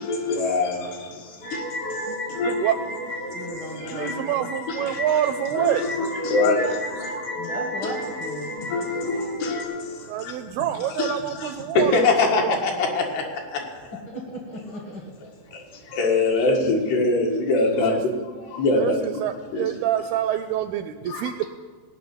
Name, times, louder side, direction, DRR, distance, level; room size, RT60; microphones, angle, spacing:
voice 1, 0.0-2.7 3.2-4.2 4.7-5.0 5.5-7.3 7.8-7.9 8.6-13.9 15.5-19.2 19.5-19.7 21.1-21.3, left 3 dB, 75° left, 3.8 m, -25 dB
sound 1, 1.4-9.6, equal, 30° left, 0.7 m, -33 dB
voice 2, 2.4-2.8 3.9-5.8 10.1-11.9 12.4-12.6 17.9-18.0 18.7-21.4, right 11 dB, 85° right, 2.2 m, -26 dB
voice 3, 3.3-4.5 7.3-8.6 14.0-15.1, equal, 50° left, 1.5 m, -36 dB
17.5 x 5.9 x 8.8 m
omnidirectional pair, 4.8 m